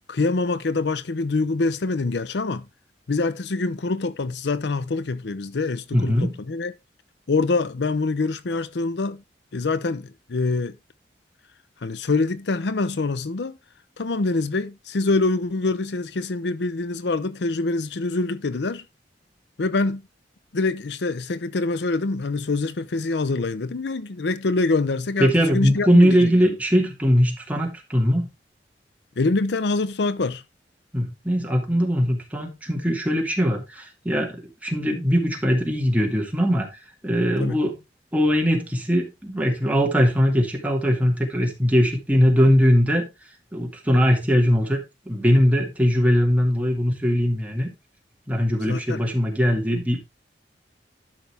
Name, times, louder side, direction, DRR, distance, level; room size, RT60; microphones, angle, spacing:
voice 1, 0.1-2.6 3.1-6.7 7.3-9.2 9.5-10.8 11.8-13.5 14.0-18.8 19.6-20.0 20.5-26.3 29.2-30.4 37.4-37.6 48.7-49.0, left 3 dB, 70° left, 0.6 m, -25 dB
voice 2, 5.9-6.4 25.2-28.3 30.9-36.7 37.0-37.8 38.1-43.1 43.5-44.8 45.1-47.7 48.3-50.0, equal, 10° right, 2.4 m, -20 dB
12.0 x 5.9 x 3.5 m
head